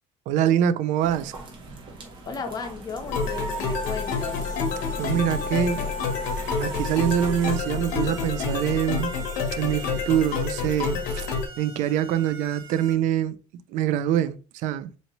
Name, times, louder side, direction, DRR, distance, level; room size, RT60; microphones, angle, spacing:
voice 1, 0.3-1.3 5.0-5.9 6.6-9.1 9.6-13.4 13.7-14.4 14.6-14.9, right 10 dB, 70° right, 0.4 m, -24 dB
sound 1, 1.0-8.7, right 2 dB, 40° right, 1.1 m, -43 dB
sound 2, 1.3-1.6 2.1-2.3 2.6-12.9, right 2 dB, 90° right, 1.4 m, -38 dB
voice 2, 2.3-4.6, left 5 dB, 30° left, 0.8 m, -35 dB
sound 3, 3.1-11.5, left 5 dB, 75° left, 0.9 m, -28 dB
4.3 x 2.8 x 2.9 m
cardioid pair, 130°, 13 cm